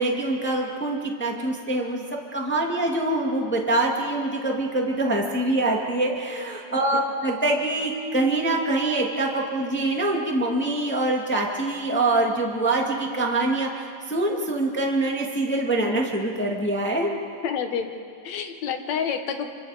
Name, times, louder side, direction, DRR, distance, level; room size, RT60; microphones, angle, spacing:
voice 1, 0.0-2.0 2.3-17.1, right 2 dB, 5° left, -1 dB, 1.4 m, -24 dB
voice 2, 17.4-17.9 18.2-19.5, left 7 dB, 60° left, 5 dB, 2.4 m, -28 dB
27.5 x 26.0 x 5.1 m, 2.4 s
omnidirectional pair, 3.9 m